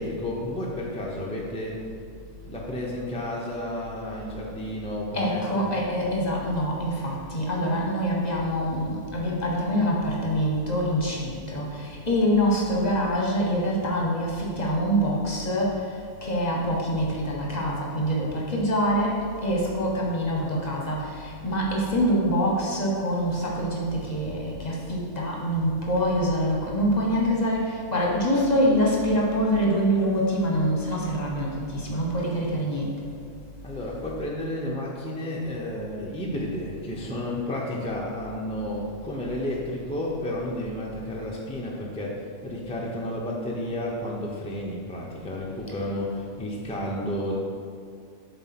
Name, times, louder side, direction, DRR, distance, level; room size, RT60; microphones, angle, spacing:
voice 1, 0.0-1.7 2.5-5.7 33.6-47.4, left 1 dB, 5° left, -3 dB, 0.7 m, -31 dB
voice 2, 5.1-33.1 45.7-45.8, equal, 35° left, -3 dB, 1.1 m, -25 dB
7.8 x 3.8 x 5.9 m, 2.3 s
omnidirectional pair, 1.4 m